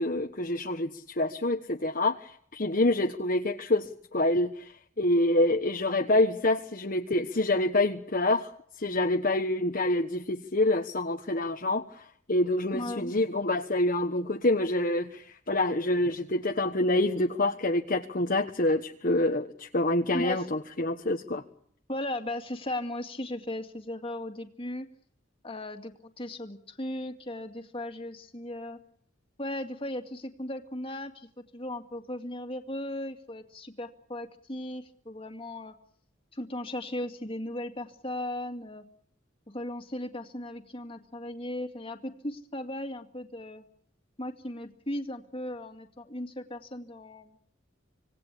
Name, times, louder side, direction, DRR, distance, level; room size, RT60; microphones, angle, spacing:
voice 1, 0.0-4.7 5.0-8.5 8.8-21.4, left 1 dB, 50° left, 4 dB, 1.3 m, -27 dB
voice 2, 12.7-13.1 20.1-20.4 21.9-24.9 25.4-28.8 29.4-31.3 31.5-35.7 36.3-38.8 39.5-43.6 44.2-47.4, left 1 dB, 30° left, 6 dB, 2.3 m, -37 dB
26.0 x 18.5 x 8.4 m, 0.63 s
head